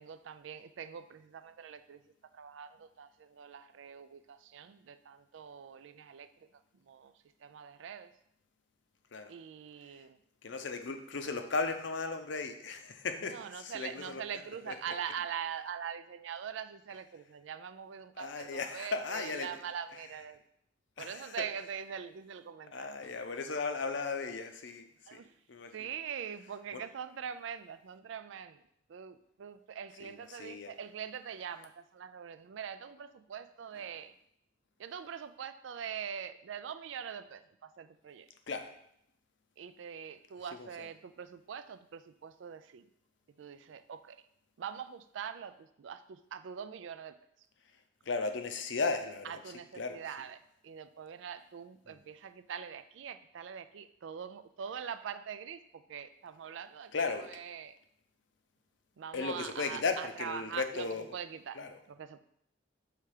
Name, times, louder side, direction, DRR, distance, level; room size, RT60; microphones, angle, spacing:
voice 1, 0.0-2.0 2.3-6.3 6.8-7.1 7.4-8.1 9.3-10.2 13.2-20.4 21.0-22.9 25.1-25.3 25.7-28.6 28.9-34.1 34.8-38.3 39.6-42.9 43.4-44.2 44.6-47.2 49.2-56.9 57.2-57.8 59.0-60.9 61.1-61.6 61.9-62.2, right 8 dB, 70° right, 12 dB, 0.4 m, -43 dB
voice 2, 10.4-14.2 14.7-14.8 18.2-19.5 21.0-21.4 22.7-25.2 25.5-25.7 26.7-26.8 30.0-30.7 33.8-33.9 38.5-38.7 40.6-40.7 48.1-49.4 49.7-50.0 51.9-52.0 56.9-57.3 59.1-61.1 61.5-61.8, left 4 dB, 65° left, 7 dB, 0.6 m, -36 dB
5.6 x 3.5 x 4.9 m, 0.74 s
head